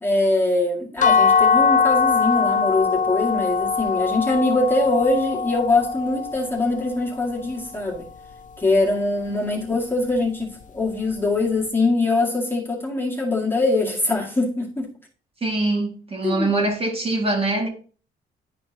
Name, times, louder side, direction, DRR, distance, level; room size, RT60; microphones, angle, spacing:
voice 1, 0.0-8.1 8.6-14.9 16.2-16.5, left 2 dB, 10° left, 2.0 m, -22 dB
sound 1, 1.0-6.8, left 5 dB, 40° left, 0.5 m, -21 dB
voice 2, 15.4-17.7, right 2 dB, 30° right, 2.0 m, -23 dB
10.5 x 4.5 x 2.8 m
cardioid pair, 90°, 20 cm